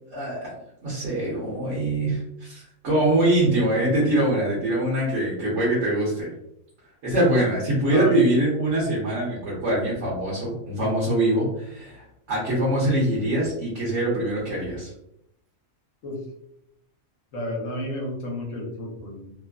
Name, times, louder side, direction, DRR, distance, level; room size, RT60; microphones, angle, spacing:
voice 1, 0.1-0.5 0.8-6.3 7.0-14.9, right 1 dB, 65° right, -7 dB, 1.3 m, -23 dB
voice 2, 7.9-8.2 16.0-16.2 17.3-19.3, left 1 dB, 70° left, -1 dB, 1.1 m, -31 dB
3.1 x 2.0 x 2.3 m, 0.77 s
omnidirectional pair, 1.5 m